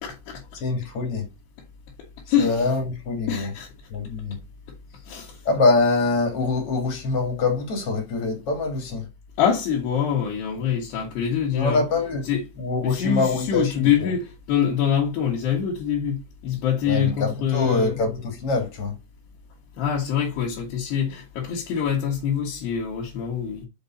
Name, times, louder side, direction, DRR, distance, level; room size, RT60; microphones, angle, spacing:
voice 1, 0.0-0.4 2.3-2.7 3.3-3.7 5.1-5.4 9.4-11.8 12.3-12.4 12.8-18.0 19.8-23.7, left 8 dB, 70° left, 3.5 m, -25 dB
voice 2, 0.6-1.3 2.4-3.5 3.9-4.4 5.4-9.1 11.5-12.2 12.6-14.1 16.9-19.0, left 3 dB, 40° left, 2.8 m, -24 dB
7.2 x 5.3 x 4.0 m
omnidirectional pair, 5.0 m